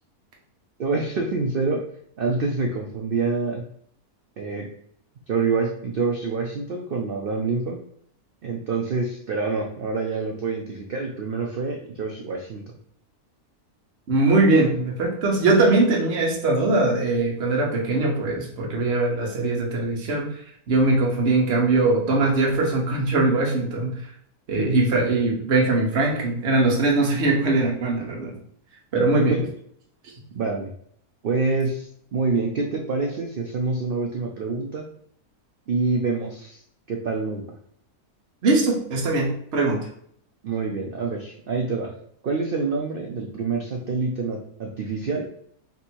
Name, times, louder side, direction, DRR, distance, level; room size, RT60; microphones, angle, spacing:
voice 1, 0.8-1.8 2.2-3.6 4.4-4.7 5.3-7.8 8.4-12.7 24.6-25.0 29.1-29.4 30.3-30.7 31.2-34.9 35.7-36.6 36.9-37.4 40.4-41.9 42.2-45.3, right 4 dB, 70° right, 1 dB, 0.5 m, -26 dB
voice 2, 14.1-20.3 20.7-23.9 24.5-28.3 28.9-29.4 38.4-39.8, right 2 dB, 50° right, -1 dB, 1.2 m, -21 dB
3.6 x 2.7 x 4.4 m, 0.65 s
omnidirectional pair, 1.6 m